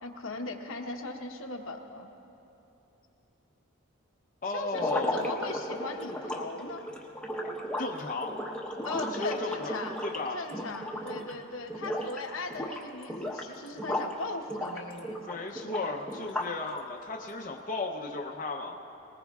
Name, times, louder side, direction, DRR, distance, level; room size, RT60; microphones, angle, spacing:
voice 1, 0.0-2.1 4.5-6.9 8.8-10.0 10.3-15.4, left 3 dB, 80° left, 2 dB, 1.0 m, -38 dB
voice 2, 4.4-5.2 7.8-8.3 9.2-10.4 15.2-18.8, left 3 dB, 40° left, 0 dB, 0.7 m, -35 dB
sound 1, 4.7-11.4 11.7-12.2 12.5-14.2 14.5-16.7, left 1 dB, 5° left, 0.9 m, -35 dB
20.5 x 19.0 x 2.4 m, 3.0 s
head